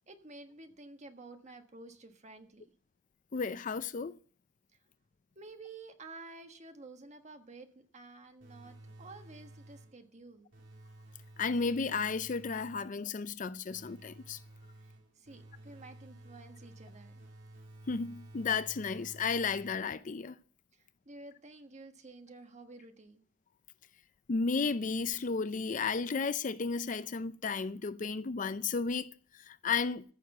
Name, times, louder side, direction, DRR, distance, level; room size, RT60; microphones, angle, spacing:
voice 1, 0.1-2.6 5.3-10.5 14.8-17.2 20.7-23.2, right 3 dB, 40° right, 1.4 m, -51 dB
voice 2, 3.3-4.1 11.4-14.4 17.9-20.4 24.3-30.0, left 5 dB, 45° left, 0.5 m, -33 dB
sound 1, 8.4-10.1 10.5-13.0 13.7-20.1, right 1 dB, 80° right, 3.0 m, -53 dB
14.5 x 6.6 x 6.7 m
head